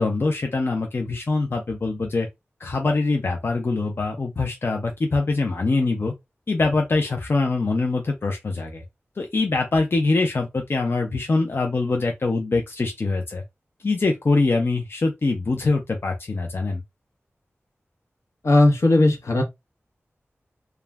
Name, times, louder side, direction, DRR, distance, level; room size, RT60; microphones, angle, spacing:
voice 1, 0.0-2.3 2.6-6.1 6.5-8.8 9.2-13.4 13.8-16.8, left 3 dB, 55° left, 0.4 m, -23 dB
voice 2, 18.4-19.4, left 2 dB, 80° left, 0.8 m, -17 dB
2.3 x 2.0 x 3.3 m
wide cardioid pair, 85°, 5 cm